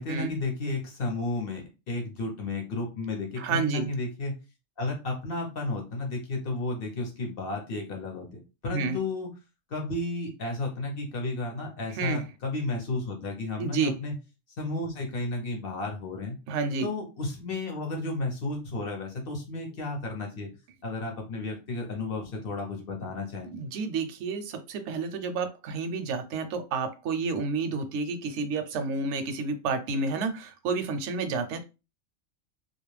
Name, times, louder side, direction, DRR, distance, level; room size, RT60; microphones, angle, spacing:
voice 1, 0.0-4.4 4.8-9.3 9.7-14.1 14.6-16.4 16.8-20.5 20.8-23.5, left 2 dB, 55° left, 1 dB, 0.7 m, -33 dB
voice 2, 3.4-3.9 8.7-9.0 11.9-12.3 13.6-13.9 16.5-16.9 23.5-31.6, right 4 dB, 65° right, 8 dB, 0.8 m, -30 dB
2.4 x 2.1 x 3.1 m, 0.28 s
omnidirectional pair, 1.4 m